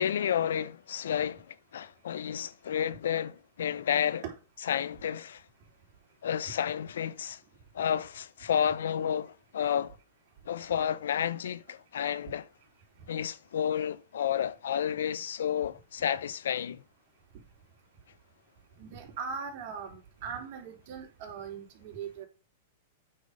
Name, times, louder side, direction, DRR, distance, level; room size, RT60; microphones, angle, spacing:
voice 1, 0.0-4.2 4.7-5.4 6.2-7.4 7.7-10.0 10.5-12.5 13.1-16.8, left 9 dB, 85° left, 0.5 m, -31 dB
voice 2, 18.8-22.3, right 6 dB, 50° right, 3.2 m, -40 dB
8.6 x 4.9 x 5.3 m
hypercardioid pair, 145°, 0 cm